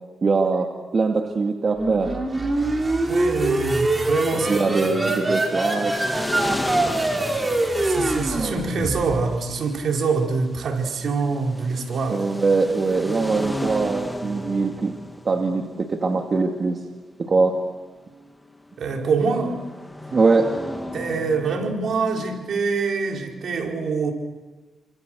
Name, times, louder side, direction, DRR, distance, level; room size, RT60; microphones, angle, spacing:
voice 1, 0.2-2.2 4.3-6.0 12.1-14.9 15.2-16.8 17.2-17.5 20.1-20.5, right 4 dB, 45° right, 2 dB, 2.4 m, -22 dB
sound 1, 1.7-9.4, right 2 dB, 25° right, 5.3 m, -24 dB
voice 2, 3.1-4.5 7.8-12.3 18.8-19.6 20.9-24.1, right 4 dB, 65° right, 1 dB, 4.9 m, -25 dB
sound 2, 4.4-22.1, left 1 dB, 10° left, 2.2 m, -35 dB
30.0 x 26.0 x 6.5 m, 1.3 s
cardioid pair, 80°, 0 cm